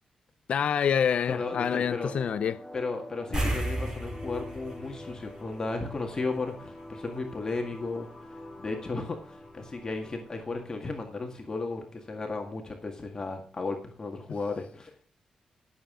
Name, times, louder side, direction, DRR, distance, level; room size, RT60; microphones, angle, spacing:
voice 1, 0.5-2.6, left 7 dB, 65° left, 0.4 m, -27 dB
voice 2, 1.3-2.1 2.7-15.0, left 3 dB, 35° left, 1.9 m, -35 dB
sound 1, 1.4-12.4, left 1 dB, 5° left, 4.2 m, -46 dB
sound 2, 3.3-6.1 6.4-6.6 9.5-9.6 9.9-10.0, right 1 dB, 30° right, 5.0 m, -33 dB
20.5 x 7.2 x 3.8 m
cardioid pair, 95°, 2 cm